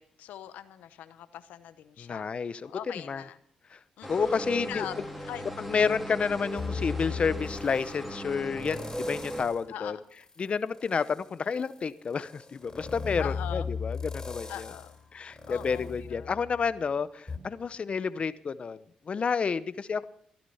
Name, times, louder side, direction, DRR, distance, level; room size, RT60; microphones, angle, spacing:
voice 1, 0.0-2.3 2.6-3.4 4.0-4.4 4.7-5.5 9.7-10.0 13.2-13.7 14.5-15.0 15.5-16.3, left 11 dB, 90° left, 13 dB, 0.8 m, -42 dB
voice 2, 2.0-3.2 3.7-3.8 4.1-4.8 5.6-10.0 10.4-14.7 15.1-20.0, left 5 dB, 45° left, 15 dB, 0.8 m, -30 dB
sound 1, 4.0-9.5, equal, 5° right, 3.1 m, -37 dB
sound 2, 6.6-8.0 8.6-9.7 10.1-16.8 17.3-17.4, left 5 dB, 25° left, 3.5 m, -38 dB
15.0 x 12.0 x 5.6 m, 0.65 s
cardioid pair, 70°, 3 cm